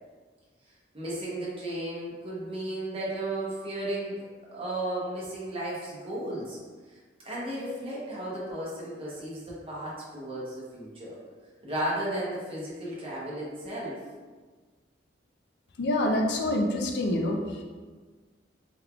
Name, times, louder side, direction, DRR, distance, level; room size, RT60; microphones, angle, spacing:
voice 1, 0.9-4.1 4.5-6.6 7.2-11.2 11.6-13.9, right 1 dB, 30° right, -7 dB, 0.8 m, -34 dB
voice 2, 15.8-17.6, left 1 dB, 65° left, 2 dB, 0.4 m, -26 dB
3.4 x 3.2 x 2.3 m, 1.4 s
head